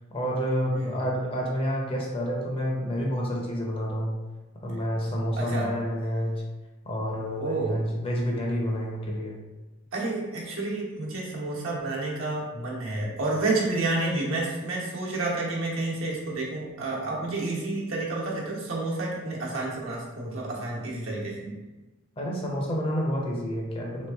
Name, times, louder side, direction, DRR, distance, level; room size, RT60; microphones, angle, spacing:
voice 1, 0.1-4.2 4.6-6.4 6.9-9.4 22.2-24.1, equal, 25° left, -2 dB, 0.7 m, -29 dB
voice 2, 5.4-5.7 7.4-7.8 9.9-21.6, right 2 dB, 75° right, -4 dB, 1.1 m, -30 dB
3.5 x 3.0 x 3.4 m, 1.1 s
head